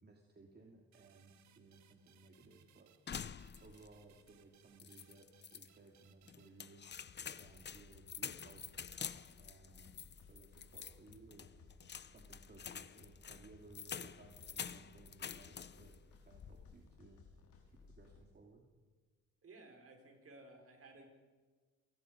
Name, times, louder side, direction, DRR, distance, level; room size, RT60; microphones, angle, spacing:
voice 1, 0.0-2.9 3.6-6.8 7.4-8.9 9.4-11.5 12.1-17.2 17.6-18.6, right 3 dB, 35° right, 1 dB, 2.6 m, -61 dB
sound 1, 0.9-7.3, right 10 dB, 70° right, 1.5 m, -70 dB
sound 2, 3.1-4.0 4.3-4.4 4.8-5.7 6.3-16.0 16.3-16.8, left 7 dB, 35° left, 0.8 m, -48 dB
sound 3, 7.1-18.2, left 4 dB, 75° left, 4.2 m, -61 dB
voice 2, 19.4-21.1, right 2 dB, 50° right, 3 dB, 5.3 m, -57 dB
28.5 x 18.5 x 5.3 m, 1.4 s
cardioid pair, 90°, 30 cm